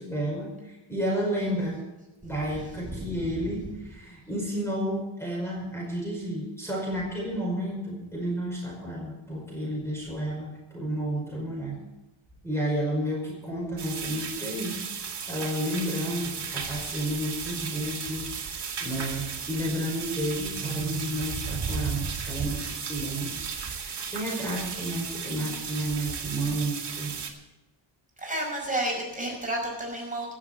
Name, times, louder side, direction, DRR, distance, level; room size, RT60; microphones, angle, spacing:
voice 1, 0.0-1.8 2.2-11.8 12.4-14.9 15.3-23.3 23.6-27.1, right 1 dB, 5° left, -3 dB, 5.1 m, -31 dB
sound 1, 13.8-27.3, right 6 dB, 55° right, 2.2 m, -35 dB
voice 2, 28.2-30.3, right 1 dB, 15° right, -2 dB, 5.3 m, -31 dB
15.5 x 7.5 x 7.9 m, 1.0 s
cardioid pair, 90°, 49 cm